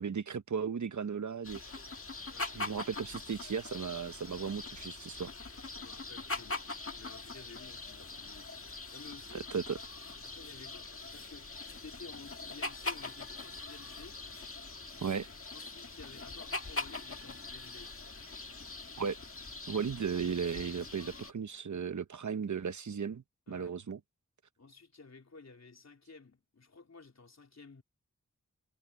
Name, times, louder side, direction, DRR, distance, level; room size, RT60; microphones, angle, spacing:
voice 1, 0.0-1.6 2.5-5.3 9.3-9.8 15.0-15.3 19.0-19.2 19.7-24.0, right 6 dB, 75° right, 1.0 m, -36 dB
sound 1, 1.4-21.3, left 3 dB, 50° left, 1.8 m, -43 dB
voice 2, 2.3-2.8 5.7-6.7 7.0-9.5 10.2-11.5 11.8-14.2 15.5-17.9 23.5-23.8 24.6-27.8, left 4 dB, 65° left, 3.7 m, -53 dB
wide cardioid pair, 65°, 29 cm